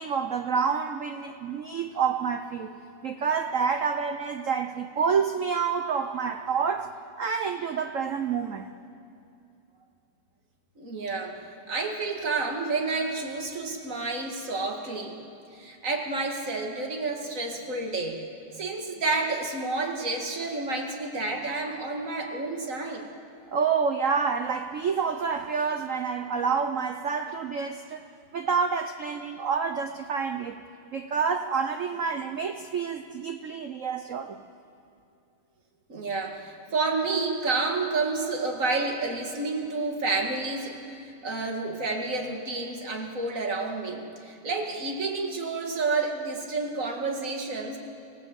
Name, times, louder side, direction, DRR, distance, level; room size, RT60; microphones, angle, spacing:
voice 1, 0.0-2.7 3.0-8.7 23.5-28.0 28.3-30.6 30.9-34.4, right 6 dB, 80° right, 7 dB, 0.7 m, -28 dB
voice 2, 10.8-11.4 11.7-15.2 15.5-18.2 18.6-23.1 35.9-40.8 41.2-47.8, right 3 dB, 40° right, 2 dB, 2.4 m, -30 dB
26.0 x 17.0 x 8.1 m, 2.5 s
omnidirectional pair, 2.4 m